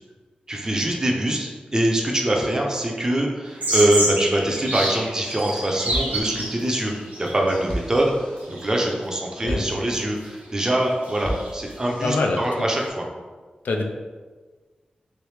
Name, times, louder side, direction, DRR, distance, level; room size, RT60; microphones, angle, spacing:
voice 1, 0.5-6.9 7.2-13.1, right 1 dB, 20° right, 0 dB, 0.5 m, -23 dB
sound 1, 3.5-8.0 8.4-8.9 10.2-10.3 10.6-10.7 11.0-12.9, right 1 dB, 75° right, 1.1 m, -28 dB
sound 2, 5.0-5.6 5.9-10.4 10.8-11.8, equal, 40° left, 0.6 m, -35 dB
voice 2, 12.0-12.4 13.6-13.8, left 3 dB, 85° left, 2 dB, 0.4 m, -23 dB
3.1 x 3.0 x 3.2 m, 1.4 s
wide cardioid pair, 145°, 3 cm